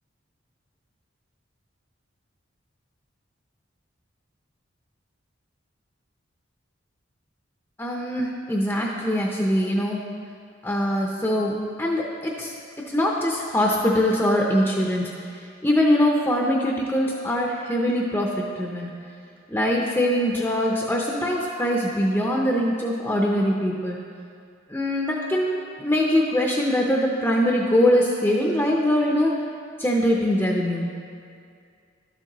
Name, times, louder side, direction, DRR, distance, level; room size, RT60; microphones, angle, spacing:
voice 1, 7.8-10.0 10.6-12.5 12.9-15.1 15.6-18.9 19.5-24.0 24.7-25.5 25.8-29.3 29.8-30.9, equal, 10° left, -2 dB, 0.6 m, -22 dB
12.0 x 7.2 x 3.0 m, 2.3 s
head